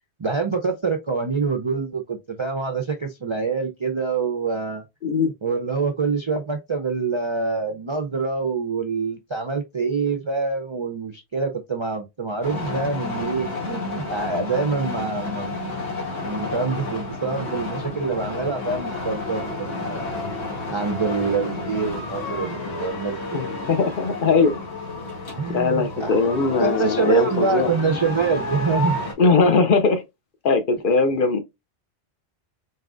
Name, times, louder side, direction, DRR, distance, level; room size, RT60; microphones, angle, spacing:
voice 1, 0.2-4.8 5.4-15.8 16.2-20.1 20.7-23.4 25.4-26.2 26.6-29.0, right 4 dB, 40° right, 0.4 m, -25 dB
sound 1, 12.4-29.1, left 3 dB, 75° left, 1.7 m, -31 dB
voice 2, 23.3-24.6 25.5-27.7 29.2-30.0 30.4-31.4, left 4 dB, 55° left, 0.8 m, -20 dB
3.9 x 3.7 x 2.4 m
omnidirectional pair, 1.1 m